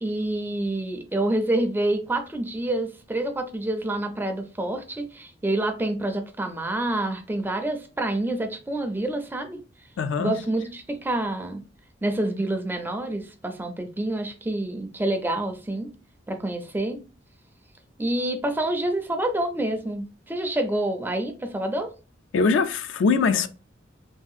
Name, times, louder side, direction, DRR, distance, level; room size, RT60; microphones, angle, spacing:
voice 1, 0.0-9.6 10.2-11.6 12.0-15.9 16.3-17.0 18.0-21.9, right 1 dB, 10° right, 0.4 m, -27 dB
voice 2, 10.0-10.3 22.3-23.5, left 4 dB, 75° left, 0.3 m, -22 dB
3.2 x 2.7 x 2.3 m
head